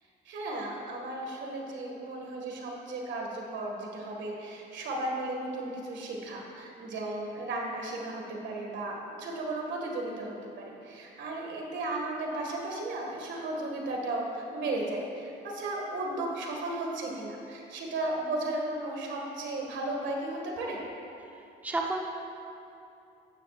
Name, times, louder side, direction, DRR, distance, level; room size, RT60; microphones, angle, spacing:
voice 1, 0.3-20.8, right 2 dB, 70° right, 0 dB, 1.9 m, -35 dB
voice 2, 21.2-22.0, right 2 dB, 10° right, 0 dB, 1.0 m, -33 dB
13.5 x 9.5 x 2.5 m, 2.8 s
cardioid pair, 85°, 19 cm